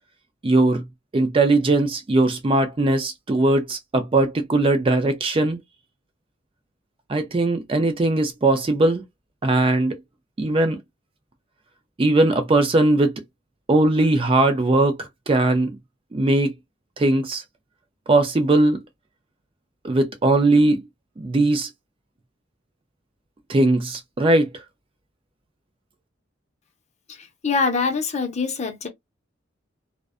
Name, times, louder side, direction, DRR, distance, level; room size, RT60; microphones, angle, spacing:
voice 1, 0.4-0.9 1.1-5.6 7.1-9.0 9.4-10.0 10.4-10.8 12.0-13.2 13.7-15.8 16.1-16.5 17.0-17.4 18.1-18.8 19.8-20.8 21.2-21.7 23.5-24.5, right 2 dB, 30° right, 0.4 m, -19 dB
voice 2, 27.4-28.9, left 4 dB, 35° left, 0.6 m, -23 dB
2.4 x 2.1 x 2.3 m
head